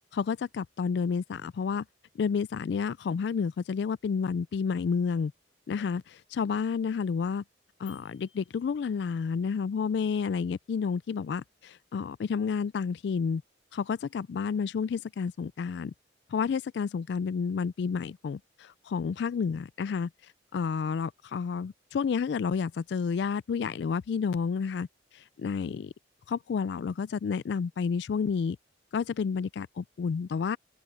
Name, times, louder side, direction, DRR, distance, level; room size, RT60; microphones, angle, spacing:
voice 1, 0.1-1.8 2.2-5.3 5.7-7.4 7.8-13.4 13.7-15.9 16.3-20.1 20.5-24.9 25.4-25.9 26.3-28.6 28.9-30.6, left 6 dB, 60° left, 0.3 m, -30 dB
sound 1, 7.9-9.4, left 11 dB, 30° left, 4.5 m, -59 dB
head